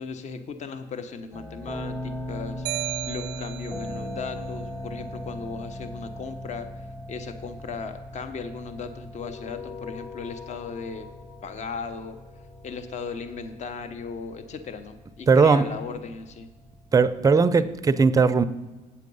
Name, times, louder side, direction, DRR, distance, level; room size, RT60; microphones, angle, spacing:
voice 1, 0.0-2.7 3.1-11.1 11.4-12.2 12.6-16.5 17.2-17.7, left 5 dB, 45° left, 0.8 m, -37 dB
sound 1, 1.3-17.8, left 1 dB, 10° left, 1.0 m, -39 dB
sound 2, 2.7-4.0, right 16 dB, 85° right, 0.5 m, -33 dB
sound 3, 9.2-14.0, left 7 dB, 65° left, 3.6 m, -45 dB
voice 2, 15.3-15.7 16.9-18.4, right 5 dB, 20° right, 0.4 m, -18 dB
8.5 x 7.3 x 5.4 m
cardioid pair, 110°, 17 cm